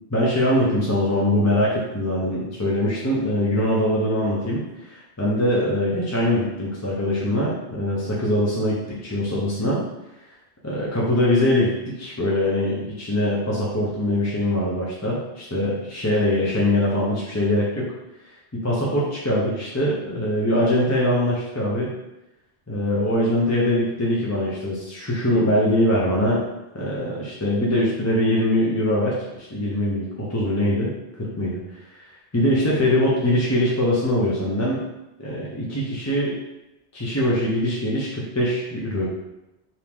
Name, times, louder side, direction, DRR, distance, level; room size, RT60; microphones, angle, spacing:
voice 1, 0.1-4.6 4.9-9.8 10.6-17.9 18.5-21.9 22.7-26.4 26.7-29.2 29.5-30.9 31.2-31.6 32.3-34.8 35.2-36.4 36.9-39.1, left 1 dB, 15° left, -6 dB, 0.7 m, -22 dB
4.8 x 2.8 x 3.5 m, 0.95 s
omnidirectional pair, 1.1 m